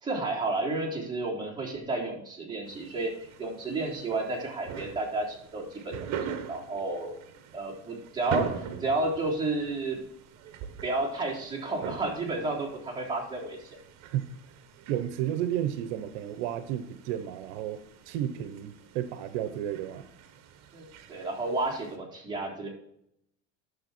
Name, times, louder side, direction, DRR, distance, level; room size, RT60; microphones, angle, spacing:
voice 1, 0.0-5.9 6.5-7.2 7.5-10.0 10.8-13.8 20.7-22.7, right 2 dB, 15° right, -3 dB, 3.6 m, -31 dB
sound 1, 2.6-22.0, right 7 dB, 50° right, 1.3 m, -43 dB
voice 2, 14.9-20.0, right 11 dB, 75° right, 11 dB, 1.0 m, -32 dB
11.0 x 6.6 x 4.4 m, 0.73 s
supercardioid pair, 140°, 34 cm